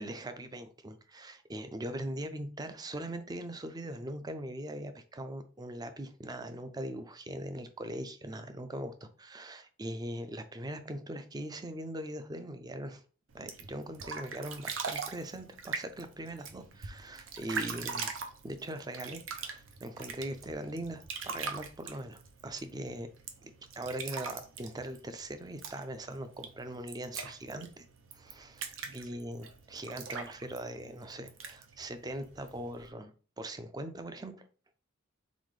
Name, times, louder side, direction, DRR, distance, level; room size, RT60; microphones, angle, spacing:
voice 1, 0.0-13.0 13.3-18.1 18.4-23.1 23.4-27.9 28.1-28.6 28.9-33.1 33.4-34.4, right 1 dB, 20° right, 9 dB, 0.4 m, -41 dB
sound 1, 13.3-32.9, right 5 dB, 75° right, 0.7 m, -42 dB
4.1 x 3.9 x 3.2 m, 0.38 s
head